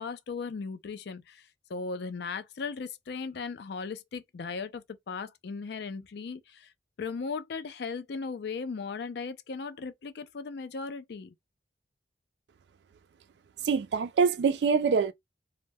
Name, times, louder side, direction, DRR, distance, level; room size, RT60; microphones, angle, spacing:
voice 1, 0.0-1.4 1.7-6.7 7.0-11.3, left 4 dB, 60° left, 0.4 m, -37 dB
voice 2, 13.7-15.1, right 5 dB, 60° right, 0.3 m, -24 dB
2.1 x 2.0 x 3.3 m
head